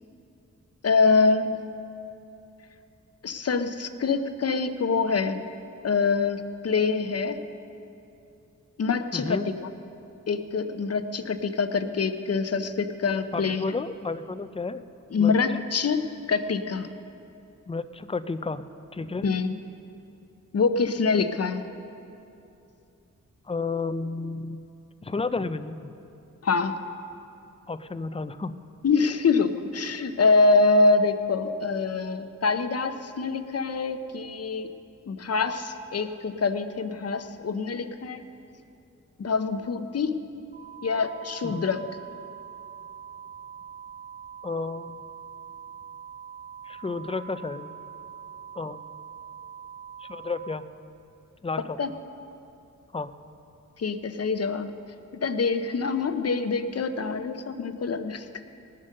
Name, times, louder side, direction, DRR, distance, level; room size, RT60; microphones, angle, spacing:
voice 1, 0.8-1.6 3.2-5.4 5.8-7.4 8.8-9.4 10.3-13.8 15.1-16.0 16.3-16.9 19.2-19.5 20.5-21.6 26.4-26.8 28.8-34.7 35.1-38.3 39.2-40.1 40.8-41.8 51.8-51.9 53.8-54.7 55.1-58.3, left 4 dB, 50° left, 9 dB, 0.8 m, -25 dB
voice 2, 9.1-9.5 13.3-14.8 15.2-15.6 17.7-18.6 18.9-19.2 23.5-24.6 25.0-25.9 27.7-28.6 41.4-41.7 44.4-45.1 46.7-47.7 48.5-48.8 50.0-50.6 51.4-52.0 52.9-53.1, left 3 dB, 20° left, 12 dB, 0.5 m, -32 dB
sound 1, 40.5-50.5, right 8 dB, 15° right, 1.7 m, -43 dB
19.0 x 7.6 x 6.6 m, 2.7 s
wide cardioid pair, 75°, 31 cm